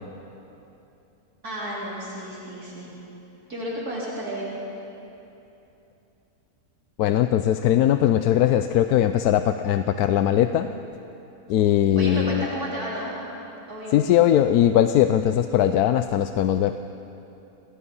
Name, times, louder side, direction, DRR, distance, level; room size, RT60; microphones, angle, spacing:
voice 1, 1.4-2.9 3.5-4.5 11.9-13.1 13.7-14.0, right 1 dB, 85° right, -6 dB, 4.4 m, -32 dB
voice 2, 7.0-10.7 11.5-12.5 13.9-16.7, left 11 dB, 85° left, 9 dB, 1.1 m, -20 dB
27.5 x 18.0 x 5.5 m, 2.9 s
omnidirectional pair, 1.6 m